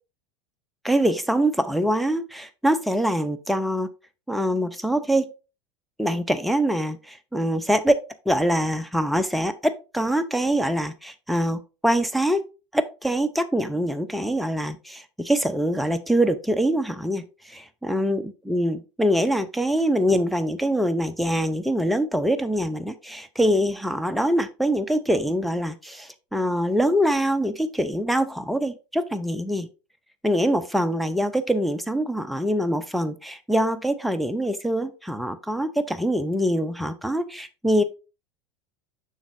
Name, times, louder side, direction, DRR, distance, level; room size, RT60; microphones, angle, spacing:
voice 1, 0.8-3.9 4.3-5.3 6.0-7.9 8.3-12.4 12.7-29.7 30.2-37.8, equal, ahead, 9 dB, 0.6 m, -24 dB
7.1 x 6.1 x 2.6 m, 0.30 s
figure-of-eight pair, 80°, 16 cm